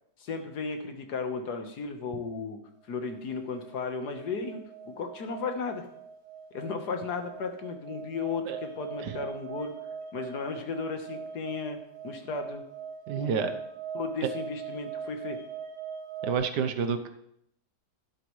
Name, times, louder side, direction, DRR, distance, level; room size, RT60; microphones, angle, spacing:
voice 1, 0.2-2.6 2.9-4.6 4.9-5.8 6.5-9.7 10.1-11.8 12.0-12.6 13.1-13.5 13.9-15.4, left 4 dB, 65° left, 5 dB, 1.8 m, -35 dB
sound 1, 3.0-16.3, right 6 dB, 60° right, 2.4 m, -42 dB
voice 2, 13.1-13.5 16.2-17.1, right 6 dB, 75° right, 8 dB, 1.4 m, -29 dB
11.5 x 11.5 x 3.2 m, 0.76 s
omnidirectional pair, 1.9 m